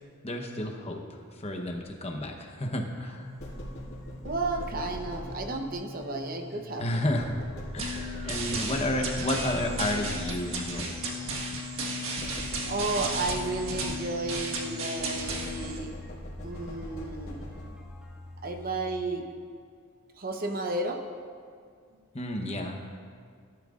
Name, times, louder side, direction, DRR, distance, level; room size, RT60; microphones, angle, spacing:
voice 1, 0.2-3.3 6.8-7.4 7.7-11.0 22.1-22.9, left 1 dB, 30° left, 3 dB, 0.9 m, -31 dB
sound 1, 3.0-19.0, left 1 dB, 5° right, 1.9 m, -46 dB
sound 2, 3.4-5.9 7.2-10.8 12.2-14.4 15.0-18.1, equal, 50° left, 3.3 m, -42 dB
voice 2, 4.2-7.0 12.6-15.9 16.4-17.4 18.4-19.2 20.2-21.0, right 2 dB, 40° right, 4 dB, 0.9 m, -32 dB
sound 3, 7.8-15.8, right 1 dB, 65° right, 1.5 m, -34 dB
18.0 x 12.0 x 2.5 m, 2.1 s
head